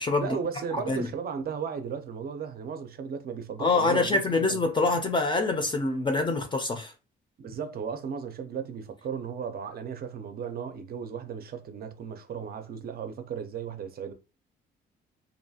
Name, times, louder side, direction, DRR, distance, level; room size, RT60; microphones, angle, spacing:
voice 1, 0.2-4.6 7.4-14.1, right 6 dB, 50° right, 0.5 m, -35 dB
voice 2, 3.6-6.9, left 3 dB, 25° left, 0.4 m, -25 dB
2.6 x 2.3 x 2.7 m
cardioid pair, 90°, 20 cm